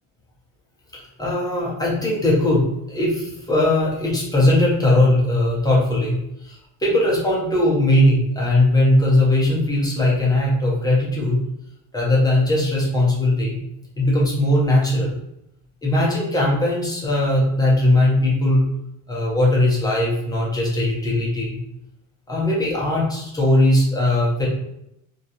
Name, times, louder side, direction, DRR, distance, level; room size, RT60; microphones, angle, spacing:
voice 1, 0.9-2.6 2.9-11.4 11.9-13.6 14.0-15.2 15.8-18.6 19.1-21.6 22.3-24.5, left 1 dB, 10° left, -6 dB, 0.5 m, -19 dB
2.8 x 2.3 x 2.5 m, 0.82 s
cardioid pair, 160°, 41 cm